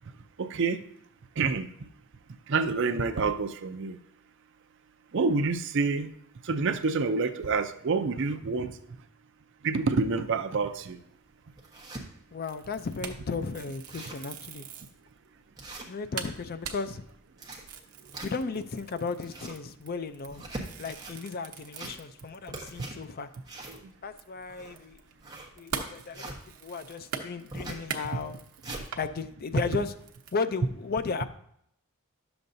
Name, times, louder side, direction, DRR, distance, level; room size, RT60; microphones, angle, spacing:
voice 1, 0.4-0.8 1.4-1.7 2.5-4.0 5.1-6.1 6.4-8.7 9.6-11.0 23.7-23.8 28.7-28.8, right 4 dB, 55° right, 8 dB, 0.5 m, -27 dB
sound 1, 10.7-10.8 11.3-12.0 12.6-12.7 13.0-13.1 13.4-13.5 13.7-14.3 14.8-14.9 15.6-16.4 17.1-18.6 19.1-19.7 20.2-21.2 21.6-22.2 22.5-26.4 27.5-27.9 28.3-28.9, right 2 dB, 15° right, 1.2 m, -42 dB
voice 2, 12.3-14.7 15.9-17.1 18.2-20.5 20.8-23.3 24.0-25.0 25.6-26.3 26.6-28.4 29.0-29.9 30.3-31.2, left 4 dB, 45° left, 11 dB, 0.4 m, -34 dB
sound 2, 12.4-15.0 15.5-15.6 15.8-15.9 16.2-23.0 23.3-23.4 23.8-29.1 29.6-30.3, right 6 dB, 75° right, 0.9 m, -42 dB
11.0 x 6.9 x 2.6 m, 0.71 s
head